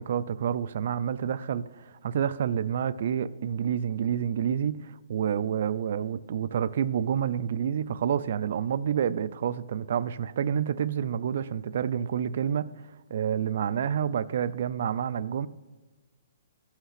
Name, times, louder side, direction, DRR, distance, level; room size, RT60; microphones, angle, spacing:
voice 1, 0.0-4.8 5.1-12.7 13.1-15.5, right 8 dB, 45° right, 0.3 m, -28 dB
15.0 x 5.7 x 5.7 m
hypercardioid pair, 175°, 0 cm